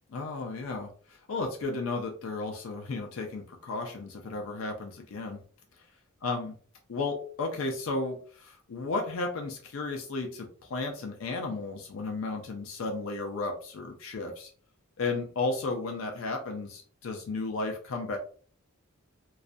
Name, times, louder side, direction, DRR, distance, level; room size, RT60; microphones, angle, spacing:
voice 1, 0.1-5.4 6.2-6.5 6.9-14.5 15.0-18.2, left 3 dB, 65° left, 2 dB, 0.4 m, -34 dB
2.3 x 2.1 x 2.5 m, 0.44 s
head